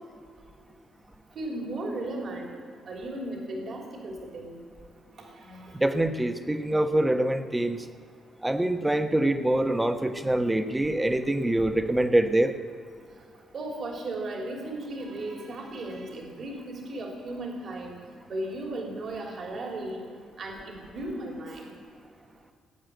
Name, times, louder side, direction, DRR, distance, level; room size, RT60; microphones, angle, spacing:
voice 1, 1.3-2.5 2.9-4.6 5.2-5.7 13.5-17.9 18.3-20.0 20.4-21.7, right 1 dB, 55° right, 0 dB, 3.3 m, -36 dB
voice 2, 5.7-7.8 8.4-12.5, right 1 dB, 10° right, 7 dB, 1.2 m, -25 dB
19.5 x 8.7 x 8.0 m, 2.2 s
cardioid pair, 90°, 0 cm